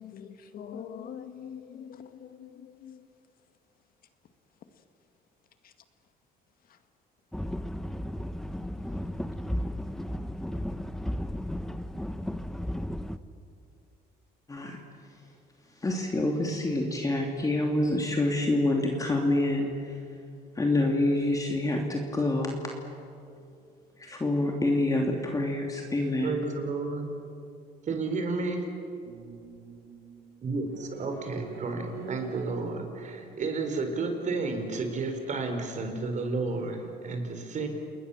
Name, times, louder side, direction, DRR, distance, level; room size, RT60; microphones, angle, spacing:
voice 1, 0.0-3.1 5.6-5.7, left 8 dB, 60° left, 8 dB, 2.0 m, -43 dB
sound 1, 7.3-13.2, equal, 5° left, 0.9 m, -34 dB
voice 2, 15.8-20.0 20.6-22.6 24.0-26.3, left 2 dB, 20° left, 1 dB, 2.7 m, -27 dB
voice 3, 26.2-27.0 27.9-28.6 30.4-37.7, right 3 dB, 45° right, 5 dB, 4.7 m, -32 dB
sound 2, 29.1-33.8, right 6 dB, 65° right, 2.3 m, -44 dB
29.5 x 20.5 x 7.3 m, 2.5 s
cardioid pair, 110°, 17 cm